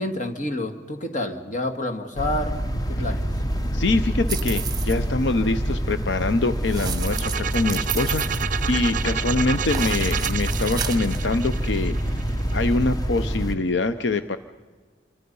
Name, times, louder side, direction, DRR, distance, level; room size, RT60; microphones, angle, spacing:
voice 1, 0.0-2.6 2.9-3.3, left 1 dB, 45° left, 6 dB, 2.1 m, -28 dB
sound 1, 2.1-13.5, equal, 20° left, 1.1 m, -26 dB
voice 2, 3.7-14.4, left 3 dB, 75° left, 10 dB, 0.7 m, -25 dB
sound 2, 4.3-5.0 6.6-9.1 9.6-11.2, right 7 dB, 25° right, 1.3 m, -33 dB
sound 3, 6.9-12.7, right 8 dB, 50° right, 0.6 m, -30 dB
28.0 x 25.0 x 5.5 m, 1.4 s
head